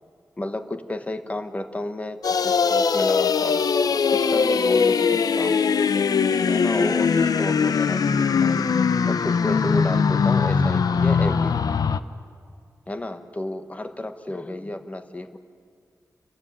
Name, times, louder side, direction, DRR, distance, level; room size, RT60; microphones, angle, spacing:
voice 1, 0.4-3.6 4.1-5.6 6.4-8.6 9.1-11.8 12.9-15.4, left 1 dB, 20° left, 8 dB, 1.2 m, -32 dB
sound 1, 2.2-12.0, left 5 dB, 80° left, 0.6 m, -21 dB
28.5 x 15.0 x 9.9 m, 2.2 s
wide cardioid pair, 125°, 6 cm